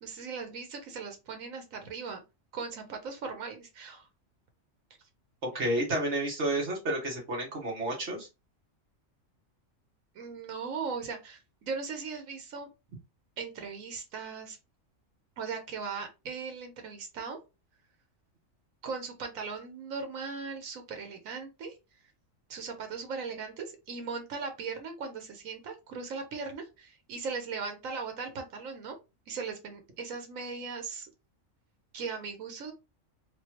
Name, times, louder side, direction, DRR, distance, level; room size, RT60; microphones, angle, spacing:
voice 1, 0.0-2.2 2.5-4.1 10.1-12.7 13.4-14.6 15.4-17.4 18.8-21.8 22.5-29.0 29.3-31.1 31.9-32.7, right 5 dB, 85° right, 5 dB, 1.3 m, -38 dB
voice 2, 5.4-8.3, right 1 dB, 60° right, -1 dB, 1.6 m, -30 dB
4.0 x 2.4 x 2.9 m, 0.26 s
omnidirectional pair, 1.4 m